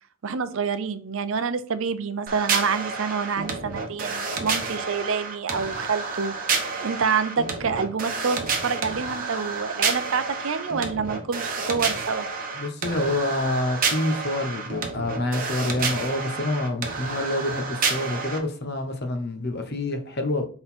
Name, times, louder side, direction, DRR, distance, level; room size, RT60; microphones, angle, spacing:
voice 1, 0.2-6.5 6.8-12.3, right 5 dB, 65° right, 0.5 m, -27 dB
sound 1, 2.3-18.4, right 4 dB, 40° right, 1.1 m, -29 dB
voice 2, 12.6-20.5, left 1 dB, 45° left, 0.9 m, -27 dB
6.1 x 3.8 x 4.3 m
head